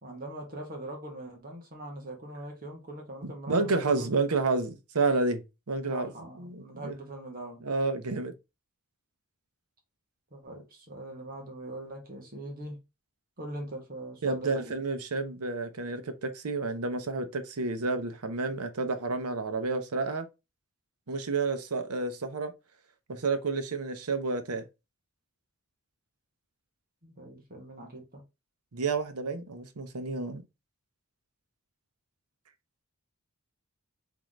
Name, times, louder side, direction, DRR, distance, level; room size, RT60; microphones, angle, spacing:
voice 1, 0.0-4.1 5.9-7.6 10.3-12.8 13.4-14.8 27.0-28.2, right 1 dB, 40° right, 1.6 m, -41 dB
voice 2, 3.2-6.1 6.4-6.9 7.6-8.3 14.2-20.3 21.1-22.5 23.1-24.6 28.7-30.4, right 3 dB, 90° right, 0.8 m, -30 dB
3.8 x 3.7 x 3.1 m
head